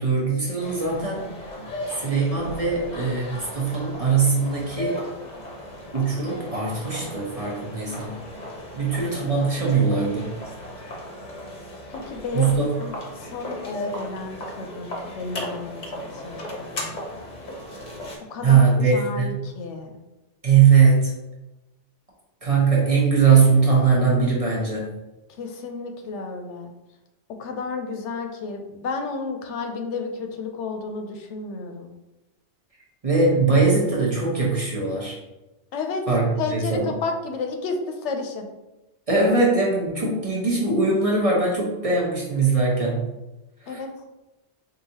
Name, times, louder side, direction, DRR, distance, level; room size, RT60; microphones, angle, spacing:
voice 1, 0.0-1.3 1.9-5.0 5.9-8.2 8.8-10.3 12.3-12.7 18.4-19.5 20.4-21.1 22.4-24.9 33.0-35.2 36.1-36.9 39.1-43.1 43.6-43.8, right 5 dB, 35° right, -4 dB, 0.8 m, -21 dB
sound 1, 0.6-18.2, left 1 dB, 45° left, 0.8 m, -36 dB
voice 2, 11.9-12.5 12.8-16.4 16.7-16.9 18.3-18.6 18.9-19.9 25.3-26.7 27.4-31.9 35.7-36.1 36.4-38.5 43.7-43.9, left 4 dB, 85° left, 4 dB, 0.9 m, -32 dB
4.7 x 2.6 x 2.8 m, 1.0 s
omnidirectional pair, 1.2 m